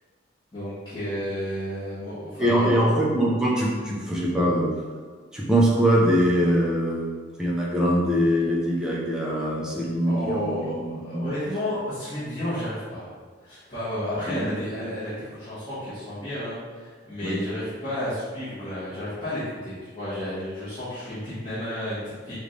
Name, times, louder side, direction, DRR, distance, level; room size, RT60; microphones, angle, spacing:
voice 1, 0.5-2.8 10.0-13.1 13.4-22.3, left 1 dB, 25° left, -15 dB, 1.3 m, -32 dB
voice 2, 2.4-4.7 5.3-7.1 7.4-10.9 11.1-11.3 14.3-14.5 17.2-17.4, equal, 5° right, -6 dB, 0.5 m, -22 dB
5.0 x 2.5 x 3.2 m, 1.5 s
head